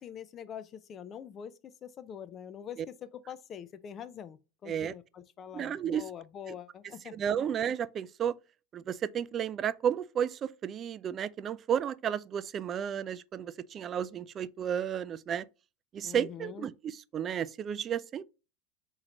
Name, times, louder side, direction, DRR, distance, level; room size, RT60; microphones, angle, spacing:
voice 1, 0.0-7.5 16.0-16.7, left 8 dB, 35° left, 0.5 m, -45 dB
voice 2, 5.5-6.1 7.1-8.3 8.7-15.4 15.9-18.2, right 8 dB, 30° right, 0.3 m, -32 dB
3.7 x 3.1 x 4.1 m
supercardioid pair, 125°, 0 cm